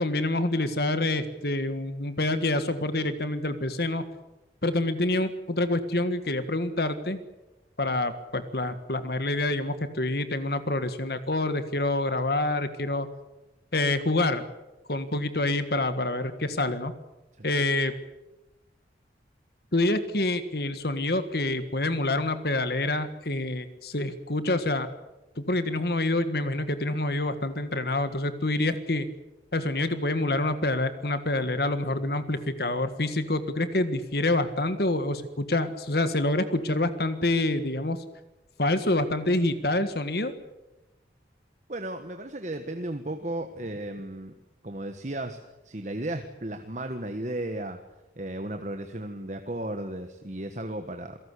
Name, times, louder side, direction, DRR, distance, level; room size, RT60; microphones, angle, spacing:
voice 1, 0.0-4.1 4.6-7.2 7.8-13.1 13.7-14.4 14.9-16.9 17.4-17.9 19.7-24.9 25.4-29.1 29.5-38.0 38.6-40.3, left 2 dB, 55° left, 11 dB, 1.7 m, -27 dB
voice 2, 41.7-44.3 44.6-45.4 45.6-47.8 48.2-51.2, right 1 dB, 40° right, 6 dB, 1.4 m, -34 dB
27.5 x 18.0 x 8.4 m, 1.0 s
head